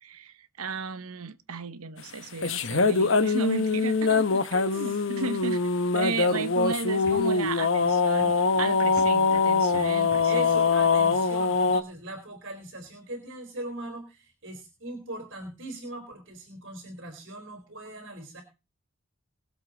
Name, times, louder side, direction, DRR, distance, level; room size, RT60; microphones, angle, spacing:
voice 1, 0.0-5.6 5.9-10.4, right 4 dB, 85° right, 1.0 m, -34 dB
sound 1, 2.4-11.8, left 4 dB, 60° left, 1.0 m, -23 dB
voice 2, 4.7-5.0 10.2-18.4, right 1 dB, 55° right, 3.4 m, -39 dB
sound 2, 5.9-11.0, equal, 15° left, 6.7 m, -49 dB
22.0 x 7.6 x 3.8 m
head